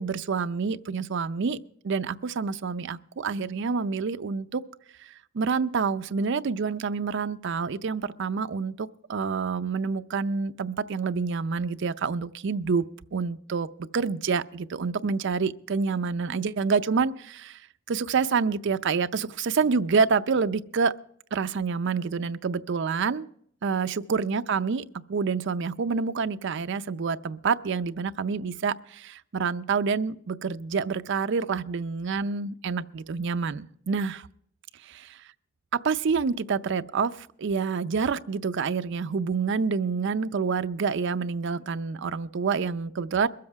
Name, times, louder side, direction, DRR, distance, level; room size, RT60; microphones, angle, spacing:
voice 1, 0.0-1.6 1.8-4.6 5.0-12.9 13.1-13.7 13.9-17.6 17.9-20.9 21.3-23.3 23.6-34.3 35.8-43.3, right 5 dB, 65° right, 12 dB, 0.5 m, -27 dB
22.5 x 7.6 x 4.6 m, 0.67 s
head